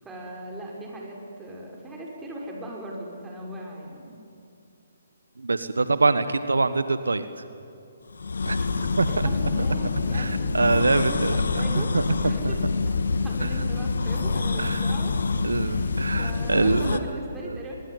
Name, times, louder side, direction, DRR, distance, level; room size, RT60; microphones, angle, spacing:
voice 1, 0.0-4.2 8.8-11.9 12.2-12.7 13.1-15.2 15.7-17.7, right 1 dB, 10° right, -2 dB, 5.8 m, -38 dB
voice 2, 5.4-7.3 8.4-8.6 9.0-9.1 10.1-11.6 11.9-12.0 12.4-12.5 13.4-13.5 14.6-14.8 15.4-17.0, right 3 dB, 85° right, 12 dB, 1.2 m, -24 dB
sound 1, 8.1-17.0, left 4 dB, 75° left, 1.6 m, -26 dB
25.5 x 22.0 x 9.6 m, 2.6 s
figure-of-eight pair, 140°, 0 cm